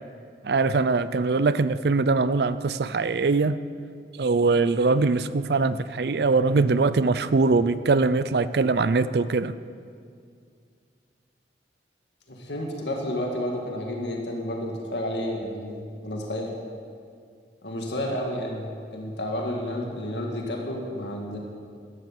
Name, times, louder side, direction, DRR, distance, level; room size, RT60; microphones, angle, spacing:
voice 1, 0.4-3.6 4.2-9.5, right 3 dB, 65° right, 15 dB, 0.5 m, -22 dB
voice 2, 12.3-16.5 17.6-21.4, left 1 dB, 80° left, 0 dB, 1.9 m, -31 dB
12.0 x 11.0 x 7.5 m, 2.3 s
head